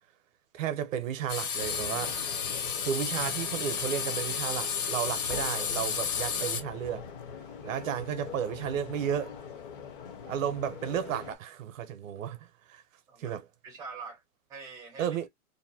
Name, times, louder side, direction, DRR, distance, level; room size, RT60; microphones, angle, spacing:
voice 1, 0.5-2.2 2.8-7.1 7.6-9.4 10.3-12.8 13.2-13.4 15.0-15.3, right 9 dB, 60° right, 0.7 m, -33 dB
sound 1, 1.3-6.6, left 7 dB, 60° left, 1.2 m, -32 dB
sound 2, 1.6-11.4, left 6 dB, 35° left, 0.6 m, -43 dB
voice 2, 13.1-13.4 13.6-14.2 14.5-15.3, right 5 dB, 10° right, 0.5 m, -45 dB
2.6 x 2.1 x 2.6 m
hypercardioid pair, 150°, 45 cm